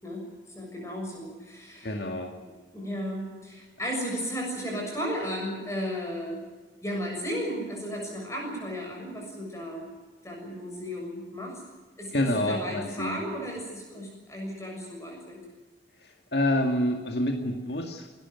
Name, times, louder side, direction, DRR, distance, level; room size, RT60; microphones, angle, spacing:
voice 1, 0.6-2.0 2.4-6.4 6.8-9.9 10.2-11.6 12.0-15.4, equal, 15° left, 0 dB, 6.8 m, -34 dB
voice 2, 1.8-2.3 12.1-13.2 16.3-18.1, left 1 dB, 65° left, 3 dB, 2.2 m, -27 dB
27.0 x 13.0 x 9.5 m, 1.4 s
head